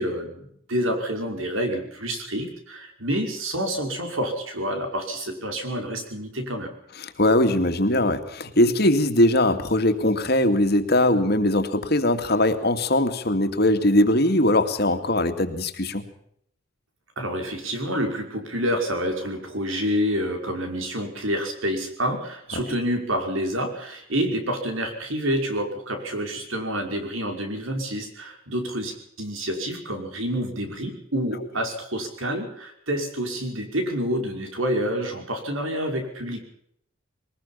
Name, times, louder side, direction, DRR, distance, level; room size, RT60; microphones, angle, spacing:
voice 1, 0.0-6.7 17.2-36.4, equal, 80° right, 4 dB, 5.6 m, -28 dB
voice 2, 7.0-16.0, left 1 dB, 50° left, 7 dB, 2.4 m, -21 dB
22.5 x 20.0 x 5.8 m, 0.69 s
head